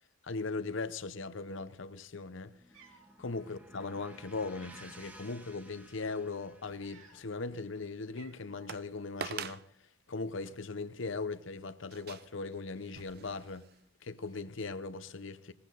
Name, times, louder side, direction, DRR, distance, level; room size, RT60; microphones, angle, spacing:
voice 1, 0.2-2.5 3.2-9.6 10.1-13.6 14.0-15.5, left 3 dB, 65° left, 0.8 m, -39 dB
sound 1, 2.4-10.2, right 1 dB, 5° right, 1.0 m, -58 dB
Cat, 2.7-3.2 4.2-5.4 5.9-6.1 6.7-7.5 7.7-7.8 8.1-8.8, right 4 dB, 80° right, 2.6 m, -59 dB
sound 2, 6.6-7.2 7.8-7.9 8.7-8.9 9.2-9.7 10.4-10.5 11.9-13.8 14.3-14.4, right 7 dB, 50° right, 0.6 m, -45 dB
19.0 x 15.5 x 4.0 m
head